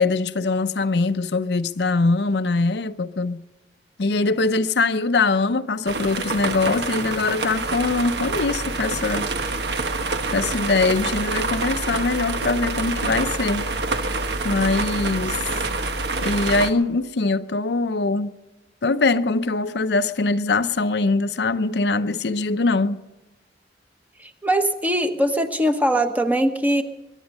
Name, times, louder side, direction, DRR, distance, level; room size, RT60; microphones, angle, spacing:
voice 1, 0.0-3.4 4.0-9.3 10.3-13.7 14.4-15.4 16.2-18.3 18.8-23.0, left 3 dB, 70° left, 0.6 m, -22 dB
sound 1, 5.9-16.7, right 3 dB, 70° right, 1.3 m, -26 dB
voice 2, 24.2-26.8, right 1 dB, 10° right, 1.1 m, -21 dB
22.5 x 10.5 x 5.4 m
head